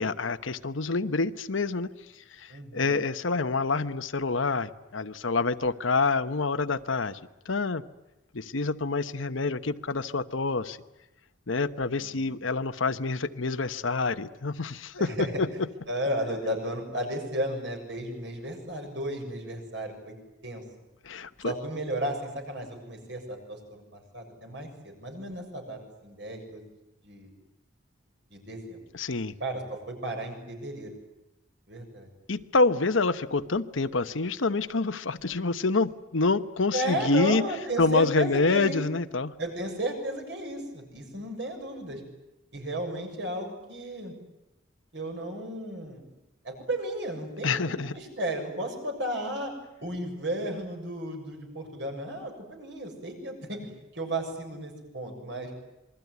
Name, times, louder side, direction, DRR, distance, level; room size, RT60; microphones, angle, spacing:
voice 1, 0.0-1.9 2.3-7.2 7.4-7.8 8.3-10.8 11.5-15.5 21.0-21.5 28.9-29.4 32.3-37.4 37.8-39.3 47.4-48.0, left 3 dB, 80° left, 11 dB, 1.0 m, -27 dB
voice 2, 2.5-2.9 12.2-12.4 15.0-15.4 15.9-20.2 20.4-20.6 21.4-26.6 27.0-27.3 28.3-28.8 29.4-30.9 31.7-32.1 36.7-38.8 39.4-42.0 42.5-44.1 44.9-46.1 46.4-49.5 49.8-53.7 53.9-55.5, right 1 dB, 60° right, 3 dB, 7.1 m, -34 dB
27.0 x 22.5 x 9.5 m, 0.96 s
head